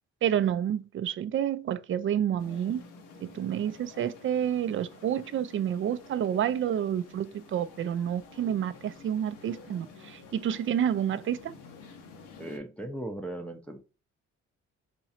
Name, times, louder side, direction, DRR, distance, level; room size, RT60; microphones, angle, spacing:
voice 1, 0.2-2.8 3.2-11.5, right 9 dB, 45° right, 0.4 m, -29 dB
sound 1, 2.4-12.6, left 4 dB, 85° left, 0.9 m, -50 dB
voice 2, 12.4-13.8, right 1 dB, 5° left, 0.6 m, -37 dB
3.7 x 3.0 x 2.8 m
cardioid pair, 90°, 30 cm